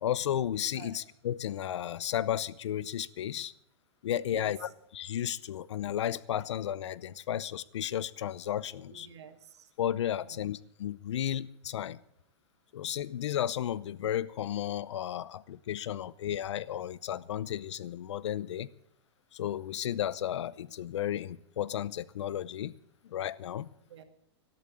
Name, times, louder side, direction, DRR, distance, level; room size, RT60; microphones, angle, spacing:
voice 1, 0.0-3.5 4.0-9.1 9.8-12.0 12.7-18.7 19.3-22.7 23.0-23.7, left 11 dB, 85° left, 21 dB, 0.7 m, -33 dB
voice 2, 8.9-9.7 10.1-10.4 23.9-24.0, right 8 dB, 75° right, 9 dB, 2.0 m, -49 dB
12.5 x 11.0 x 8.4 m, 0.72 s
supercardioid pair, 165°, 14 cm